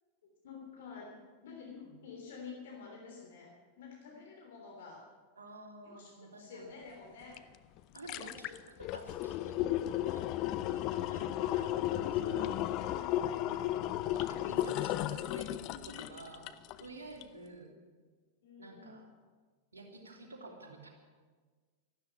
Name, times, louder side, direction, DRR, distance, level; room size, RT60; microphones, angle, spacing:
voice 1, 0.4-5.1 5.8-7.4 10.9-13.7 15.6-16.0 17.7-17.8 18.4-19.0, left 5 dB, 60° left, 0 dB, 3.2 m, -50 dB
voice 2, 5.4-6.7 7.9-9.6 9.9-10.3 10.7-11.8 12.1-12.6 13.4-17.7 18.6-19.1 19.7-20.9, right 2 dB, 75° right, 0 dB, 3.1 m, -50 dB
sound 1, 7.4-7.5 7.8-16.8 17.2-17.3, left 13 dB, 40° left, 0.6 m, -34 dB
13.0 x 12.5 x 8.4 m, 1.5 s
figure-of-eight pair, 90°, 0 cm